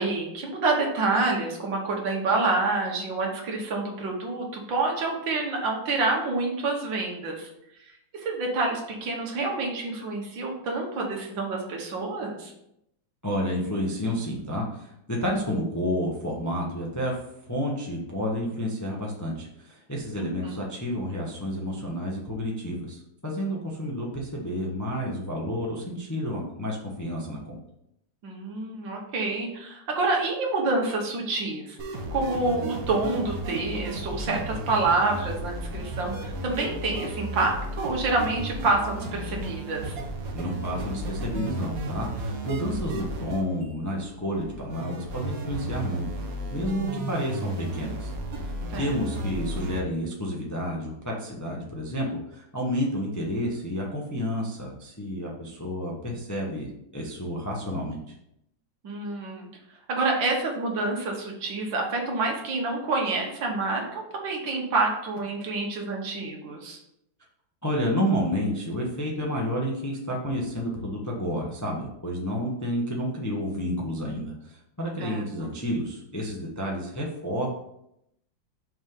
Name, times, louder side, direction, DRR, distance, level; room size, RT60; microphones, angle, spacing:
voice 1, 0.0-7.5 8.1-12.5 20.2-20.6 28.2-31.8 32.1-40.0 48.7-48.9 58.8-59.5 59.9-66.8 75.0-75.5, right 3 dB, 75° right, 0 dB, 2.0 m, -28 dB
voice 2, 13.2-17.2 17.4-27.6 40.3-46.0 46.5-48.1 48.4-58.0 67.6-77.5, equal, 15° left, -2 dB, 0.6 m, -30 dB
sound 1, 31.8-49.8, right 1 dB, 55° right, 1.4 m, -34 dB
6.1 x 3.6 x 5.3 m, 0.79 s
omnidirectional pair, 2.1 m